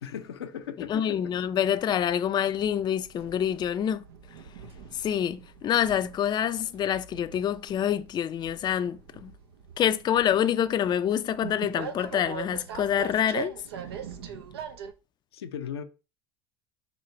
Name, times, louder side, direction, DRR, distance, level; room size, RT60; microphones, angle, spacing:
voice 1, 0.0-1.2 15.3-15.8, left 8 dB, 85° left, 0.6 m, -37 dB
voice 2, 0.9-4.0 4.9-9.3 9.8-13.5, left 9 dB, 35° left, 0.4 m, -26 dB
Train, 1.1-14.9, right 7 dB, 80° right, 0.7 m, -42 dB
4.0 x 3.0 x 4.3 m
hypercardioid pair, 75°, 13 cm